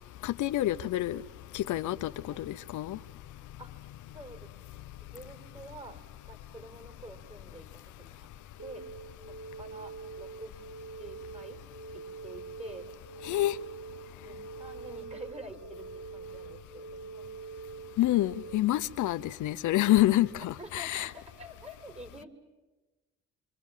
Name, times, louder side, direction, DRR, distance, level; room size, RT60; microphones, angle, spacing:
voice 1, 0.2-1.2 1.5-3.0 13.2-13.6 18.0-21.1, left 15 dB, 80° left, 0.8 m, -27 dB
voice 2, 4.1-4.8 5.1-8.3 8.6-8.8 9.3-11.6 11.9-12.9 14.2-17.7 20.6-22.3, right 1 dB, 20° right, 4.7 m, -48 dB
sound 1, 8.6-18.6, right 5 dB, 45° right, 1.0 m, -44 dB
27.5 x 24.5 x 7.4 m
cardioid pair, 90°, 30 cm